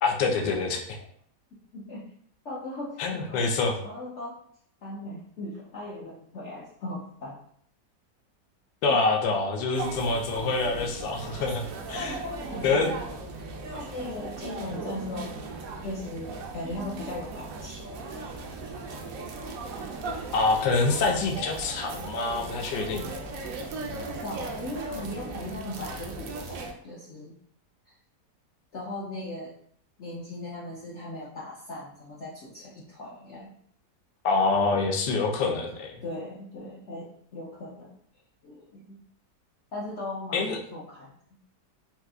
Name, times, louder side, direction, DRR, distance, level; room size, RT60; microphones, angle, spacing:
voice 1, 0.0-1.0 3.0-3.8 8.8-11.6 11.9-12.1 12.6-12.9 20.3-23.1 34.2-35.9 40.3-40.6, left 3 dB, 85° left, 2 dB, 1.3 m, -26 dB
voice 2, 1.7-2.1 2.4-3.4 3.8-4.4 4.8-7.4 8.9-9.0 11.9-12.9 13.3-15.4 15.8-18.9 23.9-27.4 27.9-28.0 28.7-29.5 30.0-33.5 35.3-35.6 36.0-37.9 38.4-39.0 39.7-41.4, left 1 dB, 65° left, -5 dB, 0.7 m, -38 dB
sound 1, 9.7-26.7, right 3 dB, 70° right, 0.8 m, -37 dB
4.3 x 2.4 x 2.3 m, 0.64 s
omnidirectional pair, 1.9 m